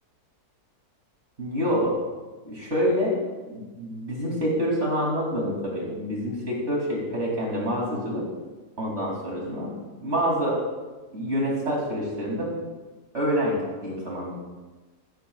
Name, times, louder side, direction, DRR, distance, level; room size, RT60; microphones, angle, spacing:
voice 1, 1.4-2.0 2.4-3.2 3.5-8.2 8.8-10.6 11.1-12.5 13.1-14.3, equal, 45° right, -2 dB, 3.1 m, -27 dB
12.5 x 12.0 x 2.4 m, 1.2 s
omnidirectional pair, 1.7 m